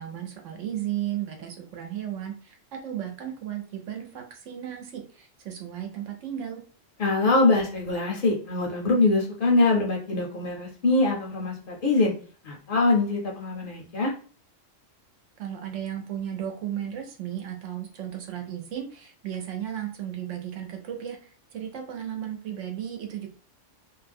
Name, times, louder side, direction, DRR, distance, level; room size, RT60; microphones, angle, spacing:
voice 1, 0.0-6.6 15.4-23.3, right 10 dB, 80° right, 3 dB, 1.0 m, -35 dB
voice 2, 7.0-12.1 12.4-14.1, left 3 dB, 55° left, -1 dB, 0.7 m, -23 dB
2.5 x 2.1 x 3.3 m, 0.40 s
omnidirectional pair, 1.3 m